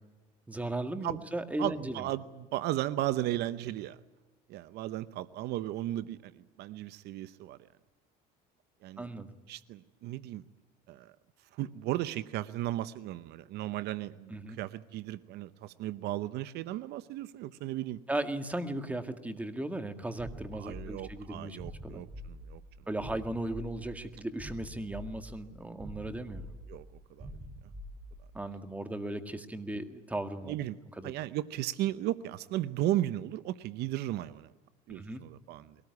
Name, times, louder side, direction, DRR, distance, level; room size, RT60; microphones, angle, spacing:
voice 1, 0.5-2.1 9.0-9.3 14.3-14.6 18.1-21.6 21.8-22.0 22.9-26.5 28.3-30.5 31.0-31.1 34.9-35.2, right 1 dB, 10° right, 8 dB, 1.9 m, -36 dB
voice 2, 1.6-4.0 4.5-7.6 8.8-10.4 10.9-11.1 11.5-18.0 20.6-22.6 26.7-27.3 30.4-30.8 31.0-34.5 34.9-35.8, right 14 dB, 65° right, 15 dB, 0.8 m, -35 dB
sound 1, 20.2-28.5, equal, 30° right, 5.7 m, -46 dB
22.0 x 18.5 x 9.5 m, 1.2 s
cardioid pair, 115°, 18 cm